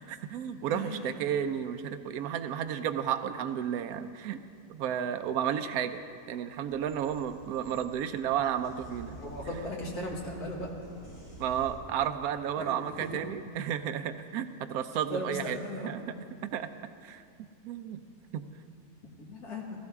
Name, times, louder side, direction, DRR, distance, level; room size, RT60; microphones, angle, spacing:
voice 1, 0.0-4.4 4.7-9.2 11.4-16.1 16.4-16.7 17.0-17.2 17.6-18.0 18.3-18.5, right 9 dB, 80° right, 9 dB, 1.1 m, -32 dB
voice 2, 0.7-1.0 9.1-10.7 12.6-13.2 15.1-16.0 19.2-19.7, left 1 dB, 85° left, -1 dB, 2.3 m, -37 dB
sound 1, 6.7-11.7, right 1 dB, 50° left, 4.6 m, -48 dB
15.5 x 14.5 x 3.6 m, 2.2 s
omnidirectional pair, 1.6 m